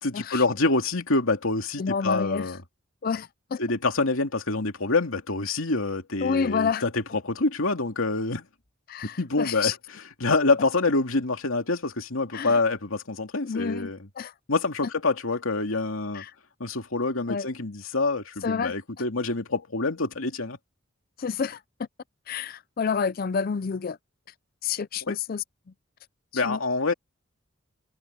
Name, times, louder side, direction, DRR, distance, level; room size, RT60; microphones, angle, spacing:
voice 1, 0.0-2.6 3.6-8.5 9.2-9.8 10.2-14.1 14.5-16.2 16.6-20.6 25.1-25.2 26.3-26.9, left 3 dB, 85° left, 2.6 m, -26 dB
voice 2, 1.8-2.5 3.0-3.6 6.2-6.8 8.9-9.8 12.3-12.6 13.4-13.9 14.2-14.3 16.1-16.3 17.3-17.5 18.4-18.7 21.2-21.6 22.3-24.0 24.6-25.4 26.3-26.6, left 6 dB, 45° left, 0.4 m, -29 dB
head